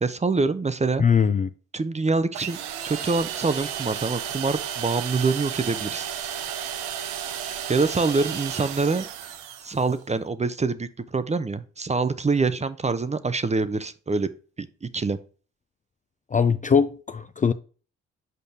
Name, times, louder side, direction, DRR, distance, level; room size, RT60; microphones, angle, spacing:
voice 1, 0.0-1.0 1.7-2.6 2.8-6.1 7.7-9.1 9.6-14.3 14.6-15.2, right 4 dB, 20° right, 0.7 m, -25 dB
voice 2, 1.0-1.5 16.3-17.5, left 6 dB, 25° left, 0.4 m, -21 dB
sound 1, 2.3-10.0, right 9 dB, 85° right, 0.7 m, -33 dB
6.7 x 5.1 x 2.8 m
hypercardioid pair, 50°, 32 cm